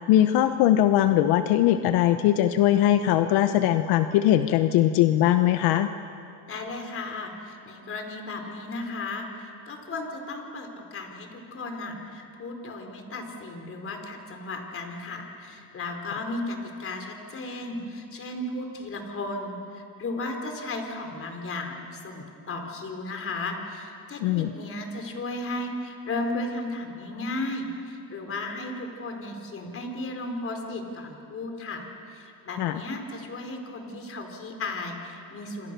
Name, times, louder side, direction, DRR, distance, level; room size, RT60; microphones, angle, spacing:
voice 1, 0.1-5.9 24.2-24.5 32.6-32.8, left 12 dB, 80° left, 9 dB, 1.0 m, -21 dB
voice 2, 6.5-35.7, left 2 dB, 35° left, 4 dB, 4.3 m, -35 dB
27.0 x 26.5 x 6.9 m, 2.7 s
cardioid pair, 130°, 38 cm